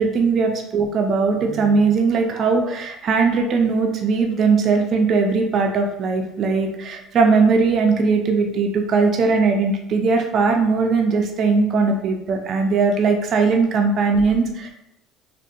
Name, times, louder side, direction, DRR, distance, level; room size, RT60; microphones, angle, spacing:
voice 1, 0.0-14.7, right 4 dB, 50° right, 3 dB, 0.4 m, -19 dB
2.5 x 2.2 x 2.5 m, 0.80 s
supercardioid pair, 100°, 0 cm